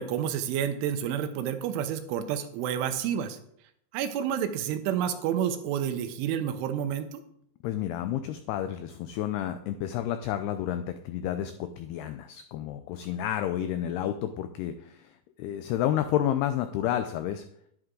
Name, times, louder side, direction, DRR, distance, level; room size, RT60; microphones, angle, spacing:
voice 1, 0.0-3.4 3.9-7.2, right 9 dB, 90° right, 9 dB, 3.4 m, -29 dB
voice 2, 7.6-14.7 15.4-17.4, left 11 dB, 90° left, 9 dB, 2.3 m, -30 dB
11.0 x 11.0 x 3.9 m, 0.72 s
omnidirectional pair, 5.4 m